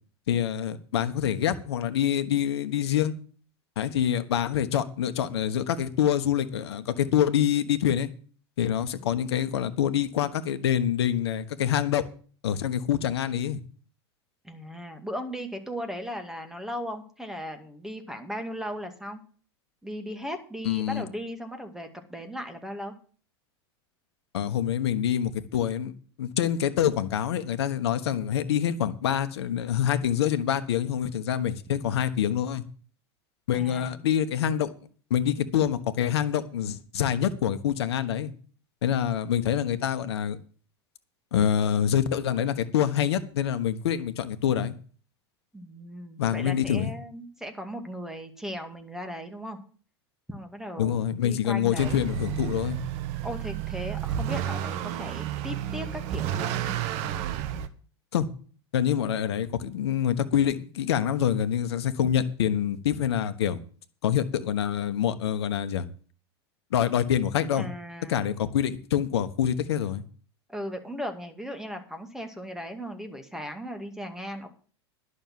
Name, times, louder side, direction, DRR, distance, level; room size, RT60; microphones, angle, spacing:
voice 1, 0.3-3.1 3.8-8.1 8.6-12.0 12.4-13.6 20.6-21.0 24.3-25.9 26.2-32.6 33.5-34.7 35.1-38.3 38.8-40.4 41.3-44.7 46.2-46.9 50.8-52.8 58.1-58.3 58.7-63.6 64.0-65.8 66.7-67.7 68.1-70.0, left 9 dB, 75° left, 1.2 m, -26 dB
voice 2, 14.4-19.2 19.8-22.9 33.5-34.1 45.5-49.6 50.3-52.0 53.2-56.7 67.5-68.2 70.5-74.5, equal, 5° right, 2.2 m, -37 dB
Motor vehicle (road) / Accelerating revving vroom, 51.8-57.7, right 11 dB, 55° right, 1.1 m, -31 dB
11.5 x 6.5 x 7.5 m
hypercardioid pair, 95°, 14 cm